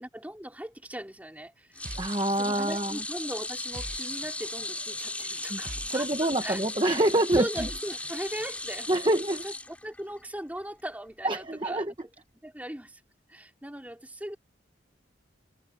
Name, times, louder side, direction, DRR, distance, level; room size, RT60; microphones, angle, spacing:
voice 1, 0.0-1.8 2.4-7.0 7.3-9.1 9.4-12.0 12.4-13.0 13.3-14.4, equal, 10° right, 3.5 m, -39 dB
sound 1, 1.7-10.2 10.6-10.8 12.0-12.1, left 2 dB, 5° left, 5.7 m, -37 dB
sound 2, 1.8-9.0, right 2 dB, 45° right, 1.4 m, -46 dB
voice 2, 2.0-3.0 5.5-5.6 5.9-7.7 8.9-9.4 11.2-11.9, right 1 dB, 25° right, 1.1 m, -26 dB
head